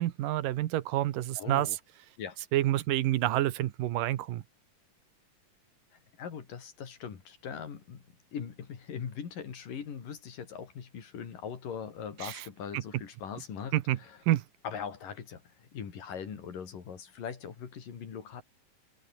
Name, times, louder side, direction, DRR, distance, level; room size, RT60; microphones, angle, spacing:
voice 1, 0.0-1.7 2.5-4.4 12.2-12.3 13.7-14.0 14.3-14.4, right 14 dB, 85° right, 2.8 m, -28 dB
voice 2, 1.3-1.8 2.2-2.4 5.9-8.0 8.3-14.2 14.6-18.4, left 7 dB, 80° left, 4.8 m, -41 dB
omnidirectional pair, 3.8 m